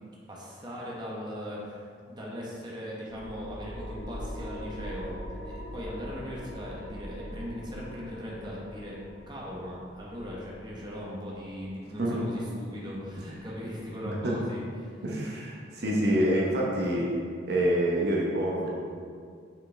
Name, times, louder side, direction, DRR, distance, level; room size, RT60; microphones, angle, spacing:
voice 1, 0.3-9.0 9.3-15.0, equal, 25° right, -4 dB, 1.0 m, -39 dB
sound 1, 3.1-14.1, equal, 70° left, 0.7 m, -43 dB
voice 2, 14.0-14.4 15.0-17.1 17.5-18.7, right 1 dB, 60° right, -3 dB, 0.9 m, -27 dB
6.0 x 5.3 x 3.3 m, 2.1 s
head